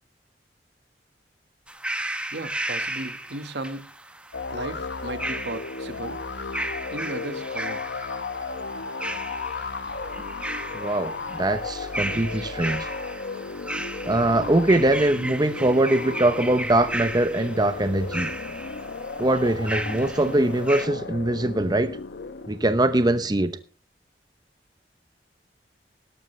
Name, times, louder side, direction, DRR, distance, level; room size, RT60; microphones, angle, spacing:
sound 1, 1.7-20.9, right 1 dB, 5° right, 1.3 m, -35 dB
voice 1, 2.3-3.9 4.5-6.2 6.9-7.8, right 2 dB, 75° right, 10 dB, 1.5 m, -35 dB
sound 2, 4.3-22.7, left 4 dB, 80° left, 0.9 m, -35 dB
voice 2, 10.7-12.9 14.0-18.3 19.2-21.9 22.5-23.5, right 1 dB, 25° right, 11 dB, 0.8 m, -22 dB
17.5 x 12.5 x 3.3 m, 0.36 s
head